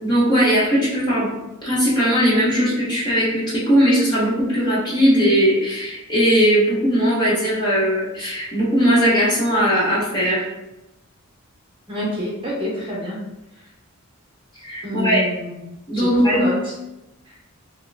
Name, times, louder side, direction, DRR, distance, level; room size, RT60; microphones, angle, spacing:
voice 1, 0.0-1.3 1.6-10.5 14.6-15.2 15.9-16.5, equal, 20° left, -8 dB, 1.2 m, -19 dB
voice 2, 11.9-13.2 14.8-15.5 15.9-16.5, left 1 dB, 25° right, -5 dB, 0.9 m, -27 dB
3.2 x 2.2 x 3.3 m, 0.93 s
head